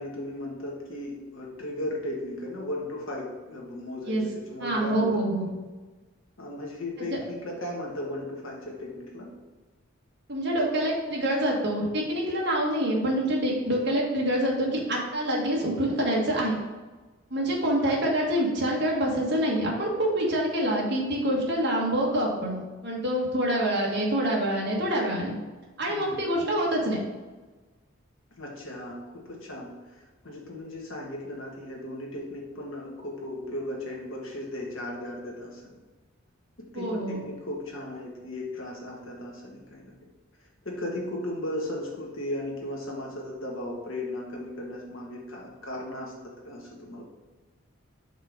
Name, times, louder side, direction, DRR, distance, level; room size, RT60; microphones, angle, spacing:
voice 1, 0.0-5.2 6.4-9.3 17.8-18.0 25.9-26.2 28.4-35.8 36.6-39.9 40.6-47.0, left 1 dB, 70° left, -2 dB, 1.4 m, -36 dB
voice 2, 4.6-5.5 10.3-16.5 17.3-25.3 25.8-27.0 36.7-37.2, right 1 dB, 55° right, -3 dB, 1.5 m, -26 dB
5.5 x 3.7 x 5.1 m, 1.2 s
head